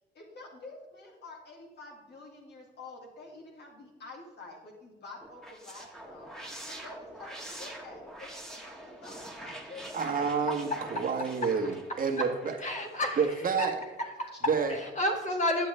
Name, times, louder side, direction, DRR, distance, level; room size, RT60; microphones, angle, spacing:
voice 1, 0.1-10.3 13.2-13.3 14.3-14.4, left 3 dB, 60° left, -1 dB, 2.2 m, -48 dB
sound 1, 5.2-13.3, right 1 dB, ahead, 1.5 m, -45 dB
voice 2, 9.9-12.6 13.2-13.8 14.5-14.7, right 5 dB, 45° right, 3 dB, 1.4 m, -29 dB
voice 3, 12.6-13.2 13.6-13.7 14.0-14.3 14.7-15.7, left 1 dB, 35° left, 2 dB, 2.0 m, -30 dB
10.5 x 7.6 x 3.3 m, 1.2 s
cardioid pair, 90°, 20 cm